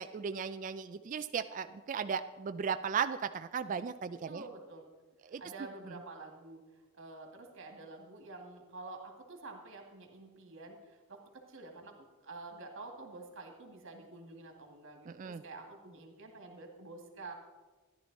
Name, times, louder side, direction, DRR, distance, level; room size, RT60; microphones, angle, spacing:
voice 1, 0.0-4.4 5.2-5.4 15.1-15.4, right 6 dB, 35° right, 10 dB, 0.3 m, -36 dB
voice 2, 4.3-4.8 5.4-6.6 6.9-17.3, right 3 dB, 60° right, 2 dB, 2.1 m, -49 dB
13.5 x 11.0 x 4.1 m, 1.3 s
head